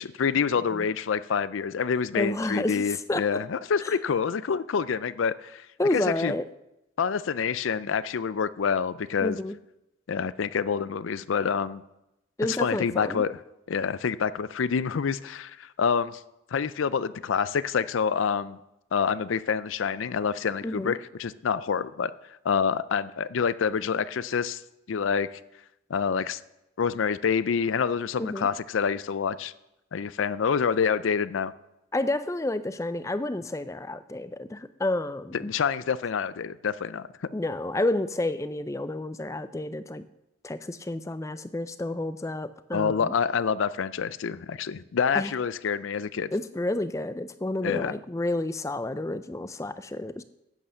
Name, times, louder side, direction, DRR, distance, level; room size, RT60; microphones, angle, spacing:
voice 1, 0.0-5.7 5.9-6.3 7.0-9.4 10.1-11.8 12.5-13.4 13.7-16.2 16.5-18.6 18.9-22.1 22.4-24.6 24.9-25.4 25.9-26.4 26.8-29.5 29.9-31.5 35.3-37.1 42.7-46.3 47.6-47.9, left 6 dB, 80° left, 17 dB, 0.4 m, -27 dB
voice 2, 2.1-3.4 3.8-3.9 5.8-6.4 9.2-9.6 12.4-13.3 20.6-20.9 28.2-28.5 31.9-35.5 37.3-40.0 40.4-43.1 45.1-45.3 46.3-50.2, left 1 dB, 15° left, 13 dB, 0.4 m, -30 dB
11.0 x 8.9 x 5.5 m, 0.90 s
head